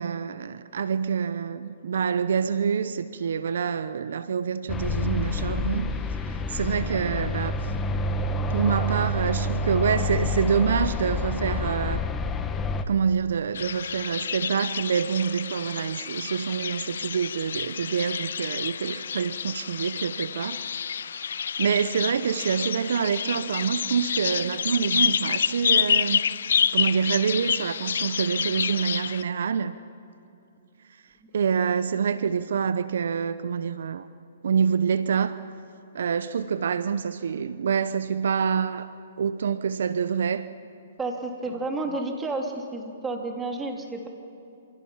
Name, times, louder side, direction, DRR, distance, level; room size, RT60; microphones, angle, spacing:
voice 1, 0.0-7.7 8.5-12.0 12.9-20.6 21.3-26.2 26.7-29.8 31.3-34.1 34.4-35.3 35.9-40.5, right 6 dB, 70° right, 0.8 m, -26 dB
sound 1, 4.7-12.8, left 2 dB, 15° left, 1.4 m, -28 dB
sound 2, 13.5-29.2, left 7 dB, 70° left, 0.5 m, -28 dB
voice 2, 41.0-44.1, right 2 dB, 10° right, 3.3 m, -31 dB
28.0 x 27.5 x 5.8 m
hypercardioid pair, 140°, 0 cm